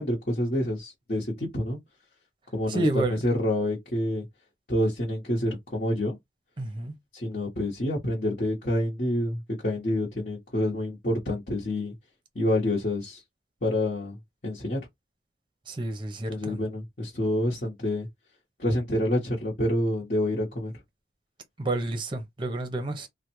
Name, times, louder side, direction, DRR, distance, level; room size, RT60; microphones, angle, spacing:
voice 1, 0.0-1.8 2.5-4.2 4.7-6.2 7.1-11.9 12.3-13.2 13.6-14.2 14.4-14.8 16.3-18.1 18.6-20.7, left 1 dB, 45° left, 1.1 m, -27 dB
voice 2, 2.7-3.2 6.6-6.9 15.7-16.6 21.6-23.1, right 2 dB, 25° right, 0.7 m, -29 dB
3.3 x 2.2 x 3.0 m
head